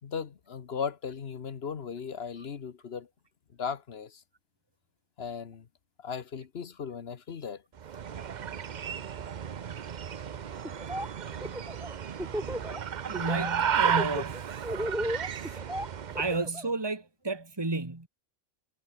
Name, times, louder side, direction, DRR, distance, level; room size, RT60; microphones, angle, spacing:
voice 1, 0.0-3.1 3.6-4.2 5.2-5.7 6.0-7.6 15.5-15.6, left 6 dB, 50° left, 1.3 m, -37 dB
sound 1, 7.8-16.4, right 8 dB, 45° right, 0.6 m, -33 dB
Laughter, 10.6-11.1 11.4-12.8 13.1-13.5 13.8-16.7, equal, ahead, 1.6 m, -34 dB
voice 2, 13.1-14.8 15.4-15.6 16.1-18.1, right 3 dB, 20° right, 2.1 m, -32 dB
omnidirectional pair, 1.4 m